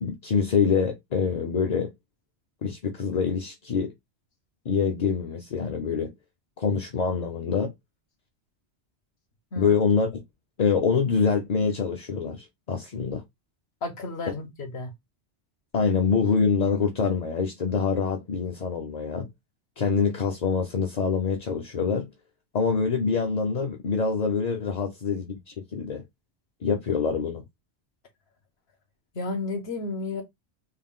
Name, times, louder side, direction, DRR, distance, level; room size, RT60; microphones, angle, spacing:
voice 1, 0.0-1.9 2.6-3.9 4.7-6.1 6.6-7.7 9.6-10.2 10.6-13.2 15.7-19.3 19.8-22.1 22.5-26.0 26.6-27.4, left 5 dB, 45° left, 0.6 m, -25 dB
voice 2, 13.8-14.9 29.1-30.2, left 3 dB, 65° left, 1.2 m, -32 dB
3.7 x 2.3 x 3.6 m
omnidirectional pair, 1.2 m